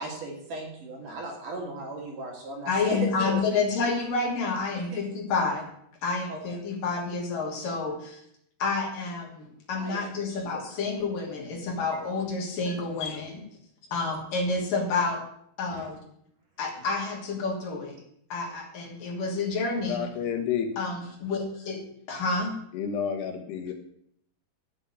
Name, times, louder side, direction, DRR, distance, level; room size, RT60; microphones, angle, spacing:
voice 1, 0.0-3.6 4.9-5.0 6.3-6.4 9.8-10.6 15.7-15.9, right 2 dB, 55° right, 1 dB, 3.9 m, -36 dB
voice 2, 2.7-5.7 6.0-8.2 8.6-13.4 13.9-15.2 15.6-16.0 16.6-18.0 18.3-20.0 20.8-21.8 22.1-22.6, left 4 dB, 55° left, 0 dB, 4.3 m, -29 dB
voice 3, 19.9-20.7 22.7-23.7, left 8 dB, 80° left, 4 dB, 3.7 m, -30 dB
13.5 x 7.0 x 8.9 m, 0.69 s
omnidirectional pair, 4.7 m